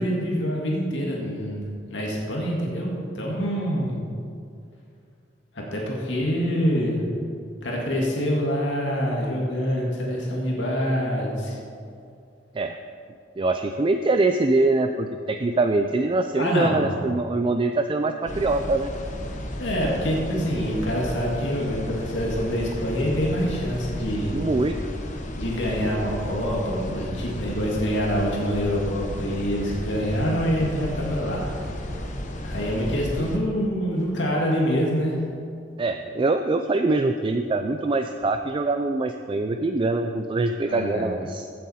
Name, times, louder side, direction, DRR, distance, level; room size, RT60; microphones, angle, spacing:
voice 1, 0.0-4.0 5.5-7.0 7.6-11.6 16.4-16.9 19.6-24.3 25.3-31.5 32.4-35.2 40.7-41.1, equal, 85° left, -2 dB, 1.9 m, -26 dB
voice 2, 13.4-18.9 24.3-24.9 35.8-41.5, right 2 dB, 30° right, 7 dB, 0.4 m, -23 dB
sound 1, 18.3-33.4, left 1 dB, 45° left, 1.1 m, -33 dB
15.5 x 7.7 x 4.2 m, 2.4 s
head